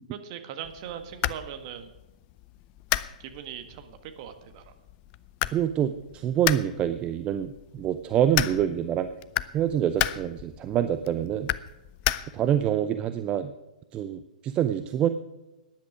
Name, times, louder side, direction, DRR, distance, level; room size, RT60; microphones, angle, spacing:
voice 1, 0.1-1.9 3.2-4.6, right 9 dB, 40° right, 8 dB, 1.6 m, -40 dB
sound 1, 0.6-12.7, left 16 dB, 30° left, 0.5 m, -34 dB
voice 2, 5.5-9.1 9.5-11.5 12.3-13.5 13.9-15.1, right 10 dB, 25° right, 11 dB, 0.6 m, -26 dB
14.5 x 10.5 x 5.0 m, 1.0 s
figure-of-eight pair, 115°, 4 cm